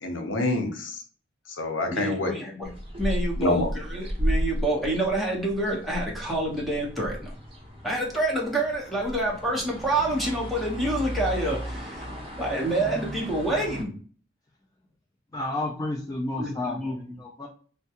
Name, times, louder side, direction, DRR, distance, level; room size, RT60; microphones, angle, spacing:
voice 1, 0.0-1.0 1.5-2.4 3.4-3.7, left 2 dB, 80° left, 5 dB, 0.7 m, -27 dB
voice 2, 1.9-2.7 3.0-7.3 7.8-12.1 12.4-13.9 16.4-17.0, right 1 dB, ahead, -3 dB, 0.9 m, -27 dB
sound 1, 2.6-13.8, equal, 30° right, 0.9 m, -34 dB
voice 3, 15.3-17.5, left 2 dB, 20° left, -1 dB, 0.4 m, -32 dB
3.4 x 2.3 x 2.8 m, 0.42 s
head